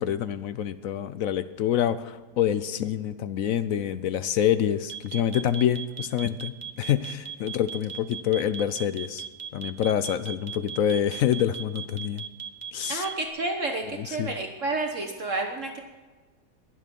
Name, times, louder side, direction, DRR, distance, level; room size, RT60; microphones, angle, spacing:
voice 1, 0.0-9.2 9.5-12.2 12.7-13.0 13.9-14.3, left 10 dB, 65° left, 13 dB, 0.8 m, -26 dB
sound 1, 4.9-13.3, right 7 dB, 30° right, 1.0 m, -37 dB
voice 2, 12.9-15.8, right 2 dB, 50° right, 3 dB, 1.4 m, -30 dB
21.5 x 7.6 x 5.3 m, 1.3 s
omnidirectional pair, 1.8 m